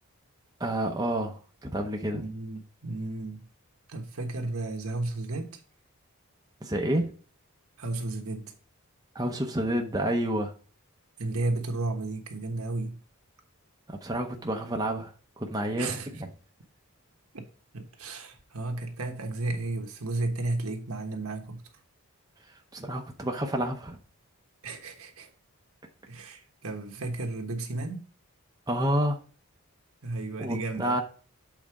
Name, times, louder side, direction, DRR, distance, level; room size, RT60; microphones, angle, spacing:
voice 1, 0.6-2.2 6.6-7.1 9.1-10.5 13.9-16.3 22.5-24.0 28.7-29.2 30.4-31.0, right 1 dB, 15° right, 0.7 m, -29 dB
voice 2, 2.1-3.5 3.9-5.6 7.8-8.5 11.2-13.0 15.8-16.1 17.3-17.4 17.7-21.6 24.6-25.3 26.1-28.0 30.0-31.0, right 2 dB, 80° right, 1.3 m, -33 dB
7.5 x 4.1 x 4.7 m
head